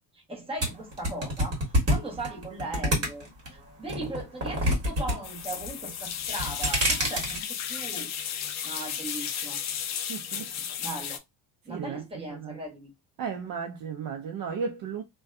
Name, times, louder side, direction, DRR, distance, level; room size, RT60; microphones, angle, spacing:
voice 1, 0.1-1.6 1.9-8.1 8.6-9.6 10.8-11.2 11.6-12.9, right 2 dB, 15° right, 0.9 m, -38 dB
sound 1, 0.6-3.5 3.9-5.2 5.4-5.9 6.3-7.4, equal, 35° right, 1.4 m, -26 dB
sound 2, 5.2-11.2, left 8 dB, 40° left, 0.4 m, -34 dB
voice 2, 10.1-10.7 11.7-12.0 12.3-12.6 13.2-15.0, right 6 dB, 50° right, 0.6 m, -35 dB
2.5 x 2.3 x 2.2 m
cardioid pair, 120°, 44 cm